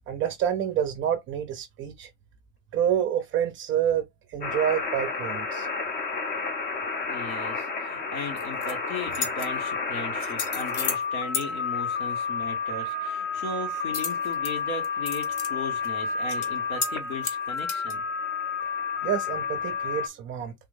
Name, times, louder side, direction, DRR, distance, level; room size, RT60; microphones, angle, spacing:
voice 1, 0.1-2.1 2.7-5.7 19.0-20.5, right 9 dB, 30° right, 0.5 m, -28 dB
sound 1, 4.4-20.1, left 4 dB, 25° left, 0.6 m, -31 dB
voice 2, 7.1-18.0, left 3 dB, 80° left, 2.0 m, -37 dB
sound 2, 8.4-8.7 9.1-9.5 10.2-11.0 11.3-11.5 13.9-14.5 14.8-15.5 15.8-15.9 16.3-16.5 16.8-16.9 17.2-17.9, left 6 dB, 45° left, 1.1 m, -32 dB
3.4 x 2.6 x 3.4 m
supercardioid pair, 125°, 41 cm